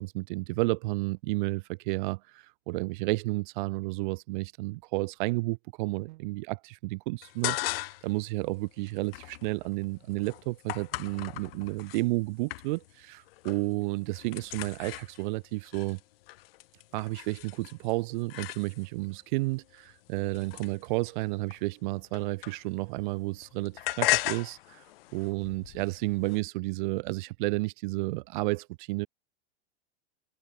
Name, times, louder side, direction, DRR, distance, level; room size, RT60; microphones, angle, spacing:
voice 1, 0.0-16.0 16.9-24.8 25.1-29.1, right 23 dB, 45° right, 0.9 m, -32 dB
sound 1, 7.2-8.2 8.5-12.0 12.5-13.0 13.3-13.7 14.0-19.0 19.7-22.9 23.2-26.4, left 18 dB, 55° left, 2.6 m, -36 dB
supercardioid pair, 155°, 34 cm